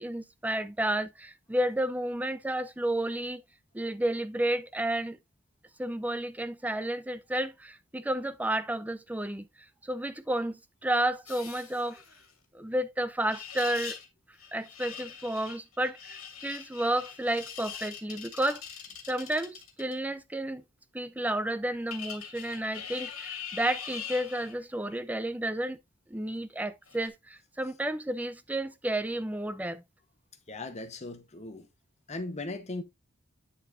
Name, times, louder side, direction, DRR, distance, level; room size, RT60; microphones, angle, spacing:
voice 1, 0.0-3.4 3.7-5.2 5.8-9.5 9.8-12.0 12.5-14.0 14.5-18.6 19.1-20.6 20.9-25.8 26.1-29.8, right 1 dB, 5° right, 0.5 m, -31 dB
sound 1, 11.3-12.3 13.2-14.1 14.4-19.9 21.9-24.5 26.9-27.1, left 8 dB, 85° left, 2.1 m, -42 dB
voice 2, 30.5-31.7 32.1-32.8, left 2 dB, 35° left, 1.0 m, -38 dB
8.5 x 7.2 x 2.5 m
head